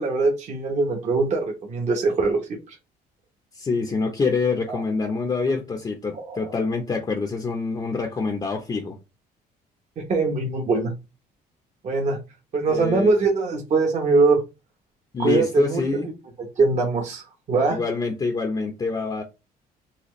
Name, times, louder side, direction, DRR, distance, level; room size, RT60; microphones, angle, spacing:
voice 1, 0.0-2.4 2.7-2.8 4.7-4.8 6.1-6.5 10.0-10.9 11.8-12.2 12.5-14.4 15.2-16.1 16.4-17.8, right 3 dB, 45° right, 0.9 m, -22 dB
voice 2, 3.5-8.9 12.7-13.1 15.1-16.1 17.7-19.2, left 4 dB, 25° left, 0.6 m, -26 dB
4.2 x 2.3 x 3.0 m
cardioid pair, 110°, 17 cm